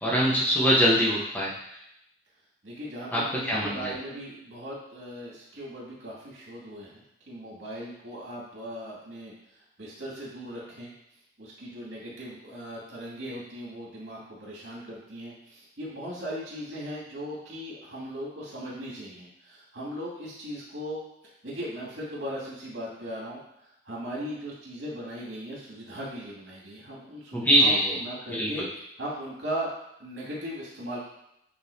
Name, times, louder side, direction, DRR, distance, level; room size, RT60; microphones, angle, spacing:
voice 1, 0.0-1.5 3.1-3.2 3.5-3.9 27.3-27.9 28.3-28.5, equal, 10° left, -5 dB, 1.1 m, -22 dB
voice 2, 2.6-7.0 7.3-9.3 9.8-10.9 11.4-28.6 29.0-29.7 30.0-31.0, equal, 75° right, -6 dB, 2.4 m, -38 dB
8.7 x 3.9 x 2.8 m, 0.79 s
head